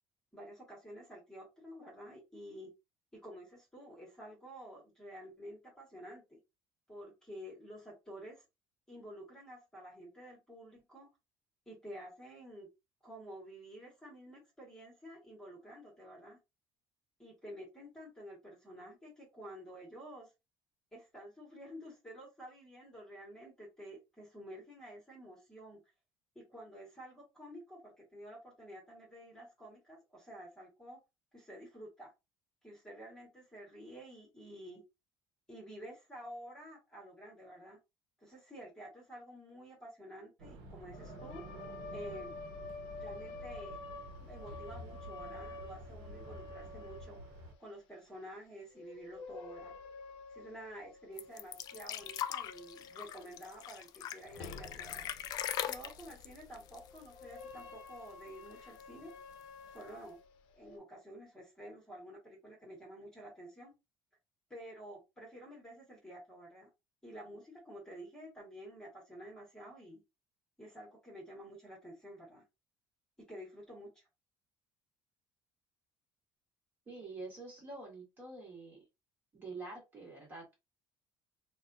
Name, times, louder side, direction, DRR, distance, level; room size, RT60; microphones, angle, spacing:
voice 1, 0.3-2.7 3.1-6.4 6.9-8.4 8.9-11.1 11.7-12.7 13.0-16.4 17.2-20.3 20.9-25.8 26.3-31.0 31.3-32.1 32.6-34.8 35.5-37.8 38.2-41.4 41.9-42.4 42.9-43.8 44.2-47.2 47.6-49.7 50.3-55.1 55.6-59.1 59.7-60.2 60.5-63.7 64.5-66.7 67.0-70.0 70.6-72.4 73.2-74.0, equal, 5° left, -2 dB, 1.4 m, -50 dB
sound 1, 40.4-47.5, right 1 dB, 80° right, 0.9 m, -50 dB
sound 2, 40.9-47.6 48.8-53.9 54.2-60.8, left 3 dB, 75° left, 0.7 m, -50 dB
sound 3, 51.2-57.6 57.9-58.0 58.3-59.0 59.8-59.9, left 11 dB, 45° left, 0.3 m, -41 dB
voice 2, 76.9-78.8 79.3-80.6, right 3 dB, 25° right, -1 dB, 1.5 m, -47 dB
4.1 x 2.3 x 2.6 m, 0.23 s
cardioid pair, 175°, 9 cm